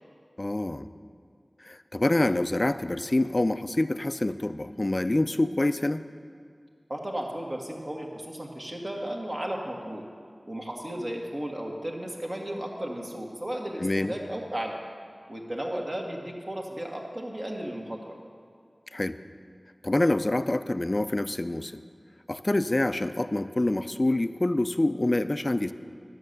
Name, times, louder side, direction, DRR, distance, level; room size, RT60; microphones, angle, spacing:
voice 1, 0.4-0.9 1.6-6.0 13.8-14.1 18.9-19.2 19.8-21.8 22.3-25.7, left 1 dB, 40° left, 11 dB, 0.3 m, -26 dB
voice 2, 6.9-10.0 10.5-14.8 15.3-18.1, right 1 dB, 45° right, 0 dB, 1.5 m, -34 dB
11.0 x 7.2 x 6.5 m, 2.2 s
wide cardioid pair, 55°, 0 cm